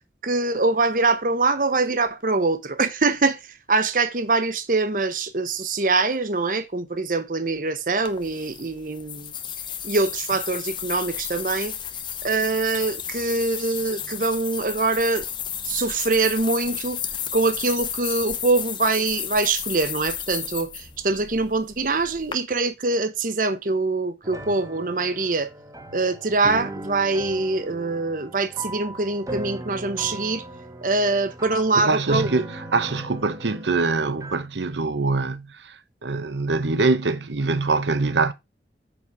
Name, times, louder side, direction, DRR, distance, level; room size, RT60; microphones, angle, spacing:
voice 1, 0.2-9.4 9.8-11.7 12.2-15.3 15.6-17.0 17.3-25.5 25.9-30.4 30.8-32.3, right 3 dB, 50° right, 0.9 m, -24 dB
sound 1, 8.1-22.3, left 9 dB, 25° left, 0.9 m, -33 dB
sound 2, 24.2-34.4, right 1 dB, 20° right, 1.0 m, -38 dB
voice 2, 31.8-38.3, right 3 dB, 85° right, 0.9 m, -24 dB
8.1 x 5.5 x 4.7 m
head